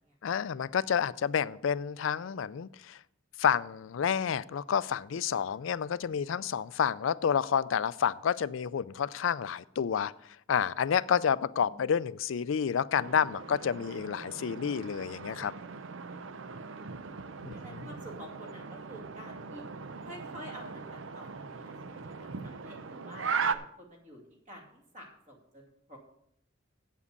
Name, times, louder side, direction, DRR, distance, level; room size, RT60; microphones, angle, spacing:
voice 1, 0.2-3.0 3.4-10.1 10.5-15.5 17.4-17.9, left 7 dB, 85° left, 18 dB, 0.4 m, -29 dB
voice 2, 11.5-11.9 17.5-19.6 20.0-26.0, equal, 40° right, 0 dB, 2.5 m, -50 dB
sound 1, 12.9-23.6, right 5 dB, 80° right, 0.6 m, -39 dB
8.3 x 7.4 x 6.7 m, 0.71 s
head